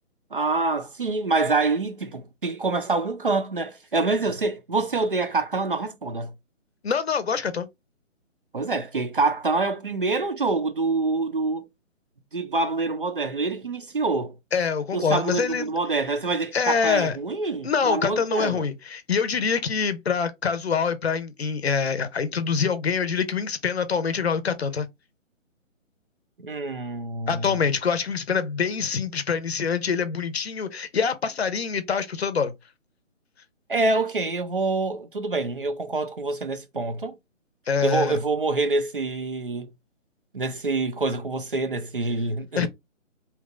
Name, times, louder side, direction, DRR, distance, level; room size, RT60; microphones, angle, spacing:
voice 1, 0.3-6.3 8.5-11.7 12.3-14.4 14.9-18.6 26.4-27.6 33.7-37.2 37.8-39.7 40.3-42.7, right 3 dB, 45° right, 0.4 m, -26 dB
voice 2, 6.8-7.7 14.5-15.7 16.5-17.1 17.6-24.9 27.3-32.5 37.7-38.2 42.6-42.7, left 6 dB, 55° left, 0.6 m, -25 dB
2.9 x 2.2 x 3.6 m
hypercardioid pair, 170°, 39 cm